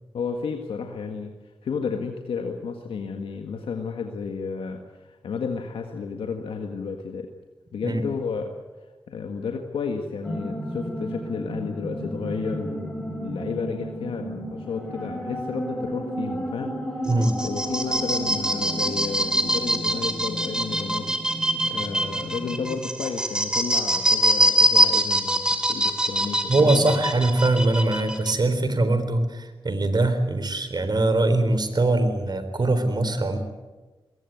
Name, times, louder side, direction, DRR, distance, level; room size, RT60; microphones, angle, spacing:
voice 1, 0.1-1.3 1.6-7.3 7.7-8.5 9.1-17.1 17.4-21.1 21.7-27.0, left 5 dB, 90° left, 4 dB, 1.7 m, -32 dB
sound 1, 10.2-22.7, equal, 10° left, 6.2 m, -34 dB
sound 2, 17.0-28.3, equal, 10° right, 3.1 m, -24 dB
voice 2, 26.5-33.4, right 2 dB, 50° right, 10 dB, 3.9 m, -22 dB
21.0 x 18.0 x 9.3 m, 1.2 s
cardioid pair, 45°, 9 cm